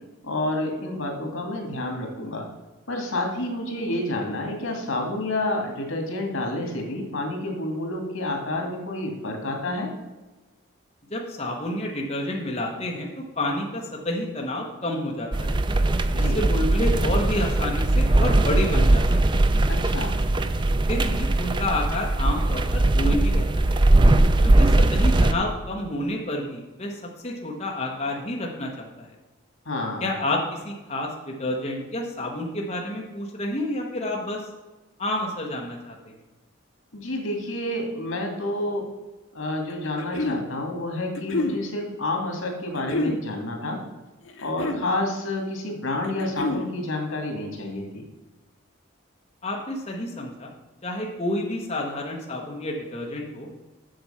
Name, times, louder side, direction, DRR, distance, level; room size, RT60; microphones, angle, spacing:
voice 1, 0.2-2.5 2.9-9.9 16.1-16.4 19.7-20.2 29.7-30.1 36.9-38.8 39.3-43.8 44.4-48.0, left 1 dB, 85° left, 2 dB, 2.2 m, -29 dB
voice 2, 11.1-15.6 16.1-19.2 20.9-23.6 24.4-29.1 30.0-34.4 35.0-36.1 49.4-50.5 50.8-53.5, left 1 dB, 30° left, -1 dB, 1.1 m, -29 dB
sound 1, 15.3-25.3, right 2 dB, 25° right, 0.4 m, -20 dB
sound 2, 39.7-40.4 41.1-41.6 42.8-43.2 44.3-44.9 46.0-46.7, left 2 dB, 70° left, 1.0 m, -27 dB
7.7 x 7.0 x 5.6 m, 1.2 s
head